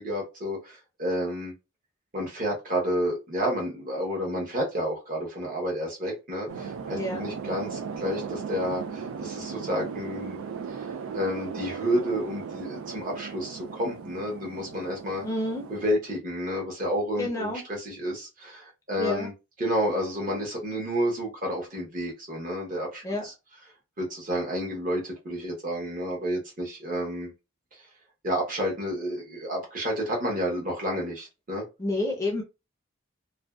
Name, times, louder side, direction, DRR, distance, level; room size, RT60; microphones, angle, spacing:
voice 1, 0.0-1.5 2.1-10.4 10.7-10.9 11.1-15.3 15.7-17.5 17.8-19.3 19.6-23.0 24.0-27.3 28.2-31.6, equal, 40° right, -1 dB, 0.9 m, -30 dB
sound 1, 6.5-16.0, right 6 dB, 90° right, 0.3 m, -37 dB
voice 2, 15.2-15.6 17.2-17.6 19.0-19.3 23.0-23.3 31.8-32.4, left 1 dB, 15° left, 0 dB, 0.5 m, -29 dB
2.5 x 2.2 x 2.3 m, 0.26 s
head